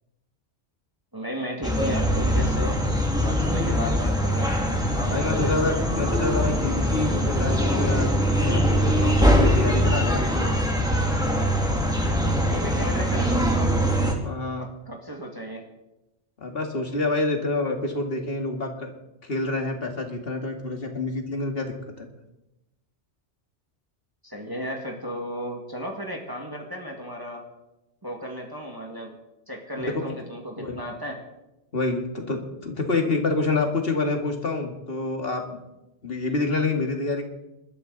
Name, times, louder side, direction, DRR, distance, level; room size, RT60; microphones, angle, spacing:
voice 1, 1.1-2.8 3.2-4.5 4.9-5.5 12.5-13.7 14.6-15.6 24.2-27.4 28.0-29.1 29.5-31.2, equal, 20° right, 0 dB, 2.0 m, -34 dB
sound 1, 1.6-14.1, equal, 5° right, 2.3 m, -22 dB
voice 2, 5.1-8.2 8.4-10.7 14.2-14.7 16.4-18.9 19.2-22.1 29.9-30.1 30.6-30.8 31.7-35.6 36.0-37.3, left 3 dB, 55° left, 3 dB, 2.3 m, -27 dB
26.5 x 12.5 x 4.0 m, 0.95 s
omnidirectional pair, 1.1 m